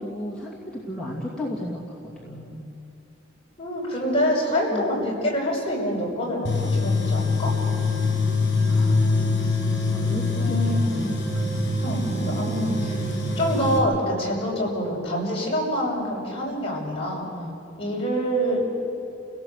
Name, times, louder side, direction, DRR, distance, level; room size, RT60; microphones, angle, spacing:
voice 1, 0.0-2.6 4.7-4.9 8.6-9.2 9.9-11.2 17.3-17.6, left 1 dB, 5° left, -6 dB, 2.5 m, -34 dB
voice 2, 3.6-7.5 10.3-10.9 11.8-17.2 17.8-18.6, equal, 30° left, -4 dB, 6.5 m, -26 dB
Tools, 6.4-13.8, left 3 dB, 60° left, 5.4 m, -24 dB
30.0 x 17.5 x 8.2 m, 2.7 s
head